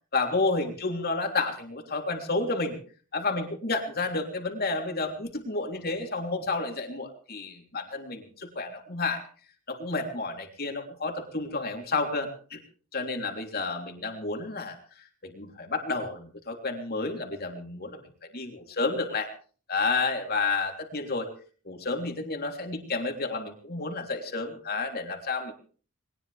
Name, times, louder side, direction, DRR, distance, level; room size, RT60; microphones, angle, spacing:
voice 1, 0.1-2.7 3.1-9.2 9.7-12.6 12.9-14.7 15.2-18.0 18.3-19.3 19.7-21.3 21.6-25.5, left 3 dB, 50° left, 3 dB, 3.3 m, -30 dB
21.0 x 20.0 x 3.4 m, 0.41 s
head